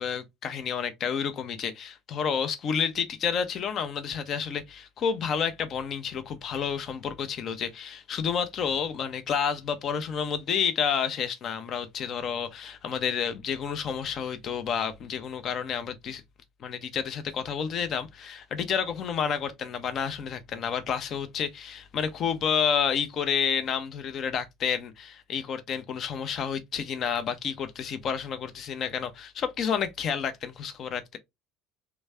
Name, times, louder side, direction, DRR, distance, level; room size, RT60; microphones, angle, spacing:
voice 1, 0.0-16.2 16.6-31.2, left 7 dB, 45° left, 0.7 m, -30 dB
3.4 x 3.1 x 3.5 m
figure-of-eight pair, 65°, 0 cm